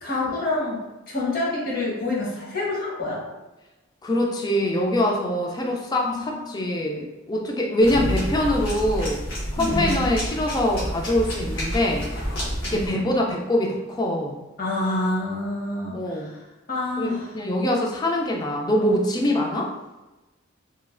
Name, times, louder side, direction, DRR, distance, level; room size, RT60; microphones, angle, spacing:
voice 1, 0.0-3.2 6.0-6.6 9.6-10.0 12.7-13.1 14.6-16.4 16.7-17.3, left 2 dB, 45° left, -5 dB, 0.8 m, -27 dB
voice 2, 4.0-9.2 9.5-12.0 12.6-14.4 15.9-16.3 17.0-19.7, left 1 dB, 20° left, 0 dB, 0.3 m, -24 dB
sound 1, 7.8-12.9, equal, 85° left, 1.2 m, -29 dB
3.0 x 2.3 x 2.4 m, 1.1 s
head